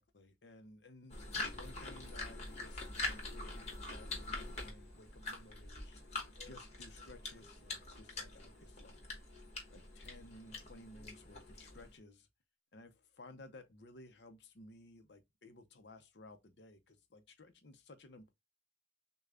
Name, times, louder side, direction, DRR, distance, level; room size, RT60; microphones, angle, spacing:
voice 1, 0.0-9.0 9.7-12.3 12.7-18.3, left 2 dB, 65° left, 0.7 m, -57 dB
sound 1, 1.1-12.0, left 2 dB, 35° left, 1.2 m, -44 dB
6.5 x 2.3 x 2.4 m
head